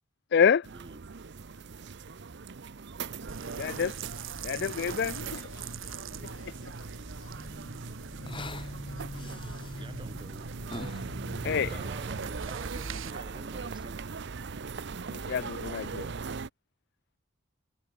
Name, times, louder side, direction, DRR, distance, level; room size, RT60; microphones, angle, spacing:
voice 1, 0.3-0.6 3.6-4.0 4.4-5.6 11.4-11.7 15.1-16.1, left 7 dB, 55° left, 0.4 m, -27 dB
sound 1, 0.6-16.5, right 5 dB, 60° right, 0.7 m, -40 dB
sound 2, 3.3-13.1, right 4 dB, 90° right, 2.1 m, -43 dB
voice 2, 5.5-7.7 8.8-10.0, left 3 dB, 80° left, 5.1 m, -58 dB
sound 3, 6.0-12.3, left 1 dB, 25° left, 1.3 m, -43 dB
voice 3, 9.8-10.5 11.4-14.0, right 2 dB, 25° right, 1.1 m, -48 dB
head